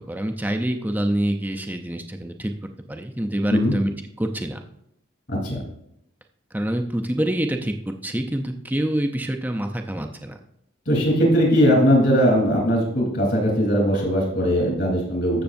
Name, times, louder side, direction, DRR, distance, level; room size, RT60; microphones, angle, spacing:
voice 1, 0.1-2.5 2.9-3.9 4.2-4.6 6.5-10.4, right 1 dB, 10° right, 4 dB, 0.5 m, -26 dB
voice 2, 5.3-5.6 10.8-15.4, equal, 55° left, -1 dB, 3.4 m, -19 dB
14.0 x 6.7 x 2.6 m, 0.78 s
head